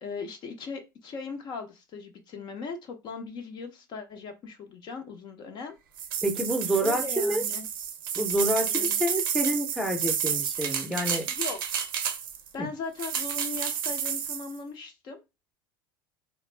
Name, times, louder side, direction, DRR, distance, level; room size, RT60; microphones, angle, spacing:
voice 1, 0.0-5.7 6.8-7.7 8.6-9.0 11.3-11.6 12.5-15.2, left 4 dB, 45° left, 0.7 m, -38 dB
sound 1, 6.0-12.5 13.0-14.5, right 8 dB, 90° right, 0.5 m, -30 dB
voice 2, 6.2-7.4 8.1-11.2 12.6-12.7, equal, ahead, 0.7 m, -28 dB
2.3 x 2.0 x 3.2 m
supercardioid pair, 105°, 11 cm